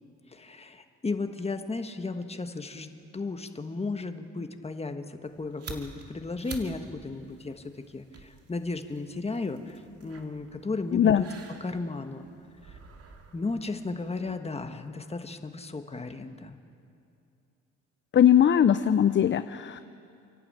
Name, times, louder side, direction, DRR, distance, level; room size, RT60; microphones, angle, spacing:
voice 1, 0.3-12.2 12.6-12.8 13.3-16.6, left 3 dB, 20° left, 7 dB, 1.4 m, -35 dB
sound 1, 5.2-14.4, right 4 dB, 50° right, 2.4 m, -49 dB
voice 2, 10.9-11.2 18.1-19.8, left 9 dB, 40° left, 12 dB, 0.6 m, -20 dB
28.5 x 11.5 x 8.8 m, 2.5 s
cardioid pair, 90°, 30 cm